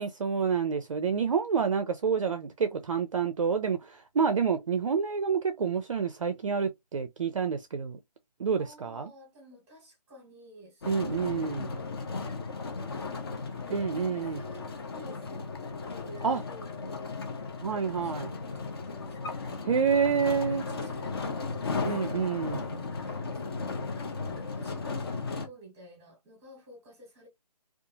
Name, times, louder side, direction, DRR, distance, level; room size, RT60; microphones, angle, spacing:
voice 1, 0.0-8.0 8.4-9.1 10.9-11.7 13.7-14.4 16.2-16.4 17.6-18.3 19.7-20.6 21.9-22.6, right 6 dB, 50° right, 0.4 m, -28 dB
voice 2, 8.6-12.5 12.8-15.5 15.9-27.3, right 1 dB, 10° right, 1.1 m, -52 dB
sound 1, 10.8-25.5, left 4 dB, 35° left, 0.5 m, -36 dB
2.6 x 2.3 x 2.6 m
figure-of-eight pair, 150°, 21 cm